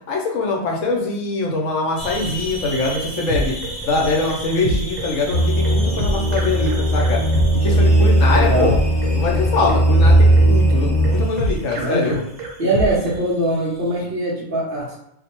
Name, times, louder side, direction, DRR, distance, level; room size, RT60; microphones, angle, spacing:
voice 1, 0.1-3.6 3.9-7.2 7.5-8.8 9.1-12.2, left 3 dB, 75° left, 0 dB, 0.9 m, -23 dB
sound 1, 2.0-14.0, equal, 15° right, 1.2 m, -35 dB
sound 2, 2.6-13.2, equal, 75° right, 1.0 m, -27 dB
sound 3, 5.3-11.2, right 1 dB, 45° left, 0.6 m, -17 dB
voice 2, 8.3-8.7 11.8-12.2 12.6-15.0, right 1 dB, 55° right, -5 dB, 0.7 m, -22 dB
2.5 x 2.1 x 2.8 m, 0.78 s
omnidirectional pair, 1.4 m